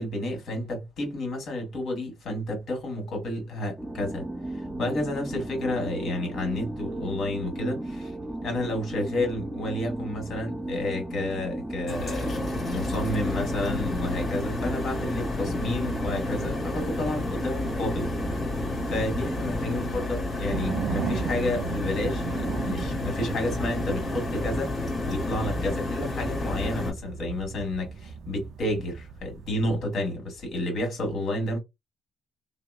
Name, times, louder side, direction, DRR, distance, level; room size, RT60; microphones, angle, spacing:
voice 1, 0.0-4.2 4.5-8.1 8.4-18.1 18.9-31.6, left 1 dB, 65° left, 1.7 m, -31 dB
sound 1, 3.8-19.8, right 1 dB, 5° right, 0.6 m, -35 dB
sound 2, 11.9-26.9, left 2 dB, 40° left, 1.6 m, -31 dB
sound 3, 20.5-29.8, right 7 dB, 70° right, 0.3 m, -37 dB
2.8 x 2.0 x 2.4 m
cardioid pair, 90°, 0 cm